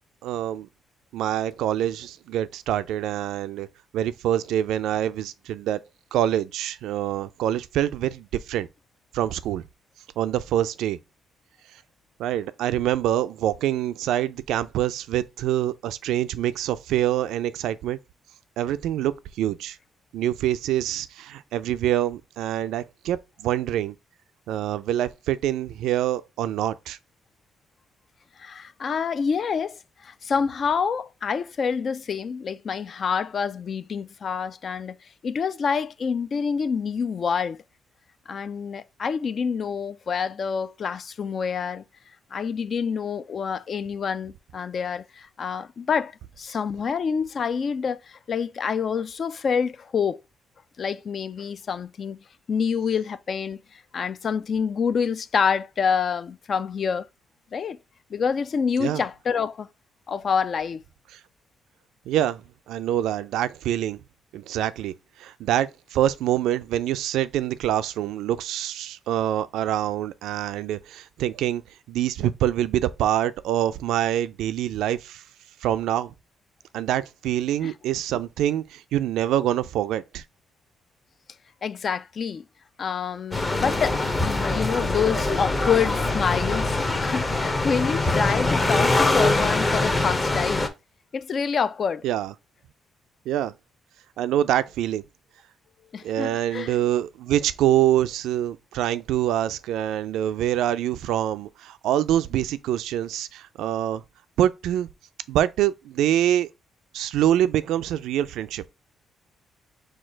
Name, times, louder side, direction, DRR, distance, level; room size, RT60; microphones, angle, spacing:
voice 1, 0.2-0.7 1.1-3.7 3.9-5.8 6.1-8.7 9.1-9.6 10.2-11.0 12.2-18.0 18.6-19.8 20.1-23.9 24.5-27.0 58.8-59.0 62.1-64.0 64.3-64.9 65.2-71.6 71.9-75.2 75.6-76.1 76.7-80.2 92.0-92.3 93.3-93.5 94.2-95.0 96.0-104.0 104.4-104.9 105.3-106.5 106.9-108.6, right 12 dB, 85° right, 0.3 m, -25 dB
voice 2, 28.4-35.0 35.2-37.6 38.3-41.8 42.3-46.1 46.4-50.2 50.8-52.2 52.5-53.6 53.9-57.1 57.5-57.8 58.1-59.7 60.1-60.8 77.6-77.7 81.6-82.4 82.8-86.8 87.0-90.7 91.1-92.0 95.9-96.7, left 6 dB, 50° left, 0.3 m, -27 dB
sound 1, 83.3-90.7, left 2 dB, 25° left, 0.8 m, -23 dB
4.3 x 2.4 x 4.5 m
cardioid pair, 90°, 0 cm